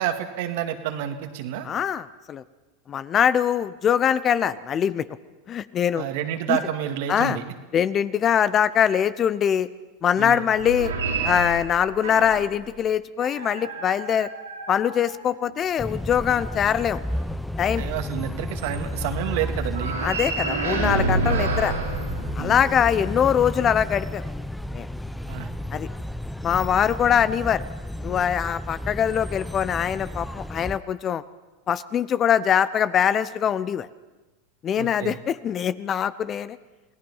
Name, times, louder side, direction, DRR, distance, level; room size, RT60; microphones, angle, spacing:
voice 1, 0.0-1.7 6.0-7.4 10.2-10.4 17.8-20.0 22.4-22.6 25.3-25.5 34.8-35.2, right 10 dB, 65° right, 6 dB, 2.1 m, -29 dB
voice 2, 1.6-2.4 2.9-5.1 5.5-6.1 6.5-6.6 7.1-7.4 7.7-9.7 10.0-10.9 11.2-14.3 14.7-17.0 17.6-17.8 20.0-21.7 22.4-24.2 24.7-24.9 25.7-25.9 26.4-27.6 28.0-31.2 31.7-33.9 34.6-36.6, left 8 dB, 35° left, 16 dB, 0.8 m, -23 dB
sound 1, 10.5-12.6 13.2-15.6 19.7-22.9, right 3 dB, 90° right, 5.2 m, -29 dB
sound 2, 15.8-30.8, left 1 dB, 5° left, 0.8 m, -32 dB
28.0 x 18.0 x 5.6 m, 1.1 s
hypercardioid pair, 95°, 0 cm